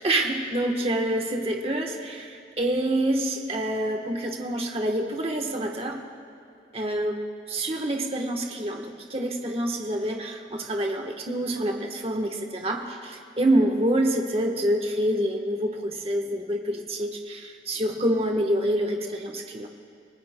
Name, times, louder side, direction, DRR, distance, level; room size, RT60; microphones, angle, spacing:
voice 1, 0.0-6.0 6.7-7.2 7.5-19.7, right 1 dB, 35° right, 2 dB, 1.2 m, -27 dB
29.0 x 19.0 x 2.2 m, 2.6 s
head